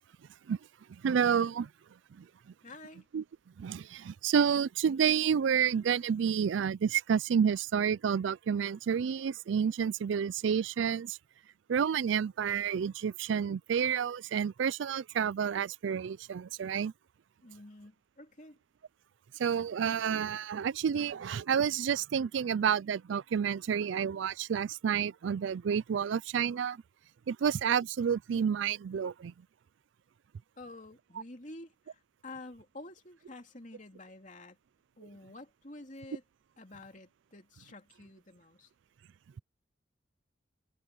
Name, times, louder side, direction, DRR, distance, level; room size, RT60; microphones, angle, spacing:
voice 1, 1.0-1.7 2.2-2.3 3.1-3.2 3.6-11.2 11.7-16.9 19.4-26.8 27.3-29.3, right 7 dB, 70° right, 0.3 m, -29 dB
voice 2, 2.6-3.1 17.4-18.6 30.6-34.6 35.0-36.2 36.6-38.7, left 2 dB, 40° left, 2.9 m, -49 dB
head